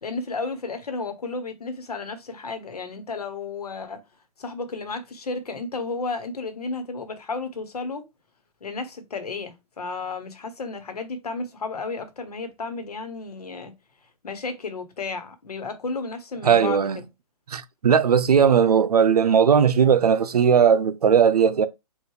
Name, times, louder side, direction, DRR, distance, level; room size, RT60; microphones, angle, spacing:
voice 1, 0.0-4.0 4.4-8.0 8.6-13.7 14.2-16.9, left 3 dB, 80° left, 1.3 m, -33 dB
voice 2, 16.4-17.0 17.5-21.7, right 7 dB, 80° right, 0.7 m, -18 dB
4.7 x 2.6 x 3.2 m
hypercardioid pair, 140°, 20 cm